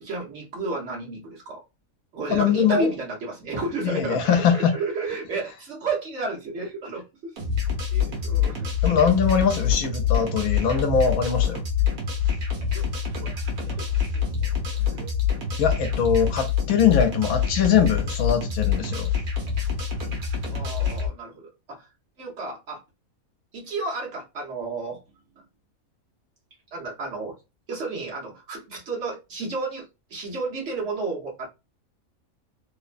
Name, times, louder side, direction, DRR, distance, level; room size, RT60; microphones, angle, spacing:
voice 1, 0.0-1.6 2.1-7.3 7.9-8.7 12.7-13.8 14.1-15.1 20.5-21.9 22.2-22.8 23.5-25.0 25.4-25.5 26.7-27.4 27.7-31.5, right 3 dB, 55° right, 1.1 m, -32 dB
voice 2, 2.3-2.9 3.8-4.7 8.8-11.6 15.6-19.1, left 7 dB, 75° left, 1.0 m, -22 dB
sound 1, 7.4-21.1, left 7 dB, 75° right, 1.3 m, -26 dB
3.0 x 2.1 x 2.4 m
omnidirectional pair, 1.5 m